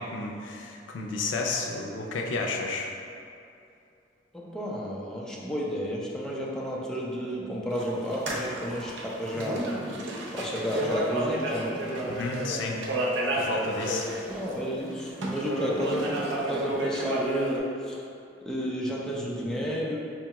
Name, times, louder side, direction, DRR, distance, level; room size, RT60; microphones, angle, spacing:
voice 1, 0.0-2.9 12.0-12.8 13.3-14.1, left 3 dB, 85° left, 0 dB, 0.4 m, -32 dB
voice 2, 4.3-9.6 10.3-11.8 14.1-18.1 18.5-20.0, equal, 5° left, -5 dB, 0.4 m, -31 dB
sound 1, 7.7-14.6 15.0-17.6, right 1 dB, 80° right, 0.5 m, -31 dB
4.6 x 2.3 x 2.9 m, 2.6 s
head